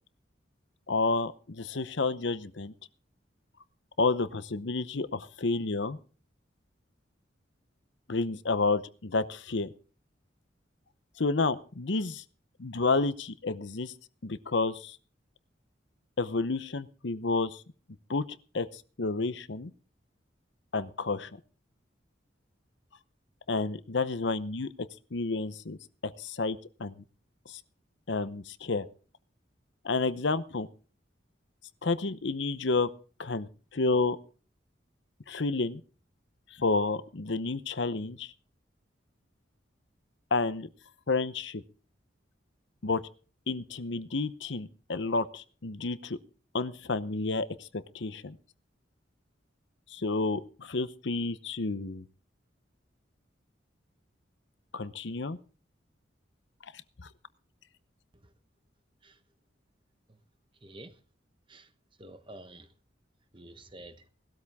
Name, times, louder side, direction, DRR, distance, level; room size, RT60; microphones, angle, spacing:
voice 1, 0.9-2.7 4.0-6.0 8.1-9.7 11.2-12.2 12.6-13.9 14.2-15.0 16.2-17.6 18.1-18.2 18.5-19.7 20.7-21.3 23.5-24.7 25.1-25.8 26.2-27.0 27.5-27.6 28.1-28.9 29.8-30.7 31.8-32.9 33.2-34.2 35.3-35.8 36.5-38.3 40.3-40.7 41.1-41.6 42.8-43.0 43.5-46.2 46.5-47.7 47.9-48.4 49.9-52.1 54.7-55.4 57.0-57.1, left 3 dB, 70° left, 0.8 m, -30 dB
voice 2, 60.6-61.0 61.5-61.7 62.0-62.7 63.3-64.1, right 1 dB, 25° right, 1.2 m, -49 dB
18.5 x 13.0 x 3.6 m
head